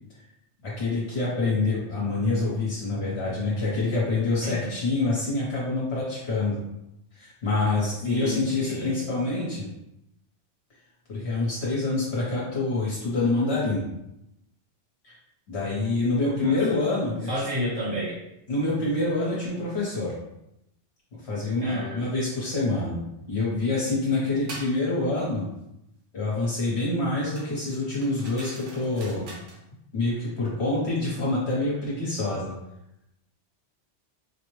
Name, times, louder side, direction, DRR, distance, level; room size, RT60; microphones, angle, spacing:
voice 1, 0.6-6.6 7.1-9.6 11.1-13.8 15.0-15.1 15.5-17.4 18.5-20.1 21.2-23.0 23.3-25.4 26.1-29.3 29.9-32.5, left 2 dB, 65° left, -6 dB, 1.2 m, -26 dB
voice 2, 8.0-9.0 16.4-16.6 17.3-18.2 21.6-22.0, equal, 20° right, -9 dB, 0.9 m, -31 dB
sound 1, 24.5-24.8 27.3-29.6, right 2 dB, 90° right, 1.1 m, -43 dB
4.8 x 2.1 x 3.1 m, 0.84 s
omnidirectional pair, 1.2 m